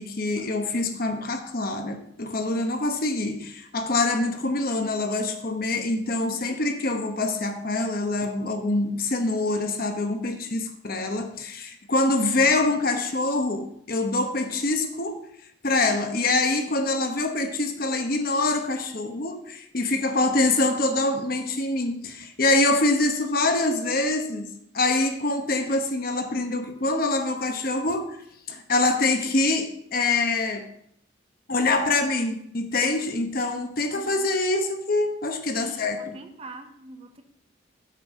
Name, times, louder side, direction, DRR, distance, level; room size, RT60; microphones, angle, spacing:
voice 1, 0.0-15.2 15.6-30.7 31.5-36.2, left 2 dB, 45° left, 6 dB, 1.0 m, -25 dB
voice 2, 6.3-6.7 20.0-20.4 33.9-34.3 35.6-37.2, right 2 dB, 30° right, 6 dB, 0.8 m, -45 dB
8.3 x 6.1 x 6.1 m, 0.70 s
head